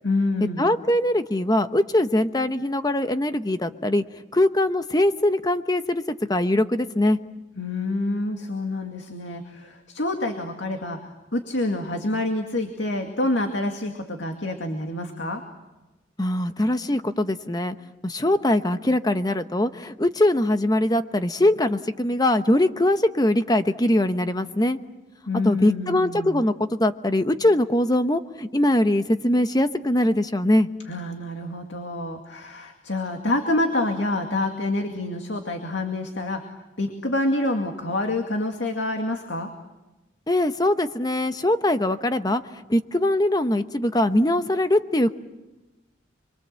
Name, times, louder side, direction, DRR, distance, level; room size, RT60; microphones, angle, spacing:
voice 1, 0.0-0.7 7.6-15.4 25.3-26.4 30.9-36.4 36.8-39.5, left 2 dB, 85° left, 4 dB, 2.3 m, -27 dB
voice 2, 0.6-4.0 4.3-7.2 16.2-17.8 18.0-24.8 25.4-30.7 40.3-45.1, left 1 dB, 20° left, 9 dB, 0.9 m, -22 dB
29.5 x 23.5 x 7.7 m, 1.1 s
head